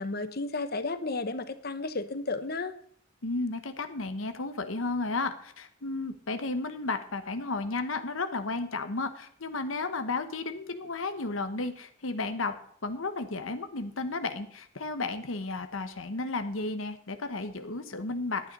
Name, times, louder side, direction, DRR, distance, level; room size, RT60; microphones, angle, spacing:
voice 1, 0.0-2.7, left 3 dB, 50° left, 12 dB, 1.1 m, -33 dB
voice 2, 3.2-12.5 12.8-18.5, left 3 dB, 85° left, 8 dB, 1.1 m, -33 dB
11.5 x 9.3 x 5.4 m, 0.62 s
head